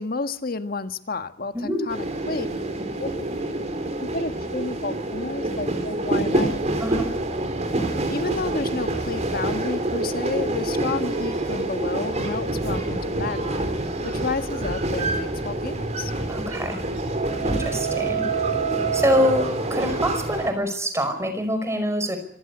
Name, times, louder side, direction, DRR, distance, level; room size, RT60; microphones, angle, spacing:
voice 1, 0.0-2.5 3.0-3.1 4.0-6.6 8.1-13.7 14.0-16.1, left 3 dB, 50° left, 9 dB, 1.6 m, -31 dB
sound 1, 1.9-20.5, right 2 dB, 35° right, 4.2 m, -26 dB
voice 2, 6.8-7.1 16.3-16.8 17.4-18.2 18.9-22.2, equal, 15° right, 8 dB, 5.4 m, -25 dB
26.5 x 15.0 x 9.9 m, 0.72 s
head